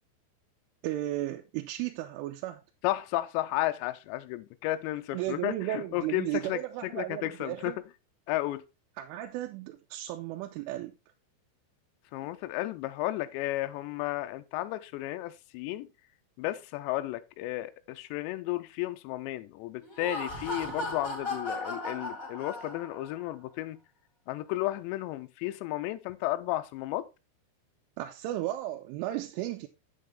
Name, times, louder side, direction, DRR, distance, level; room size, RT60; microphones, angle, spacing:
voice 1, 0.8-2.6 5.1-7.8 9.0-10.9 28.0-29.7, right 14 dB, 85° right, 3.1 m, -34 dB
voice 2, 2.8-6.6 6.9-7.7 8.3-8.6 12.1-15.9 16.4-23.8 24.3-27.1, left 16 dB, 90° left, 2.5 m, -33 dB
Laughter, 19.8-23.1, left 2 dB, 20° left, 2.4 m, -36 dB
7.8 x 7.4 x 3.5 m
omnidirectional pair, 5.6 m